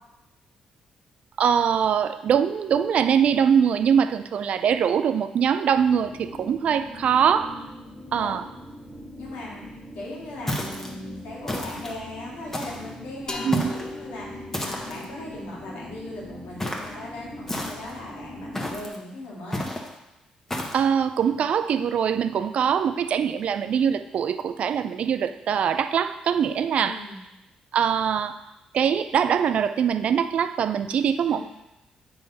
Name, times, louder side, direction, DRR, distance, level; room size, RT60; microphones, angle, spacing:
voice 1, 1.4-7.6 8.1-8.4 13.4-13.8 20.7-27.0 27.7-28.4 28.7-31.4, right 8 dB, 65° right, 11 dB, 0.4 m, -23 dB
sound 1, 5.7-18.9, equal, 10° right, 1.7 m, -42 dB
voice 2, 9.2-9.6 9.9-19.7 26.8-27.2 31.3-31.4, left 1 dB, 90° left, -5 dB, 2.3 m, -38 dB
sound 2, 10.5-10.9 11.5-12.0 12.5-12.9 13.5-13.9 14.5-15.1 16.6-16.9 17.5-18.0 18.5-19.0 19.5-19.9 20.5-20.8, left 1 dB, 15° left, 1.3 m, -31 dB
sound 3, 13.3-16.9, left 2 dB, 30° left, 0.9 m, -40 dB
8.4 x 3.4 x 5.4 m, 0.96 s
cardioid pair, 75°, 2 cm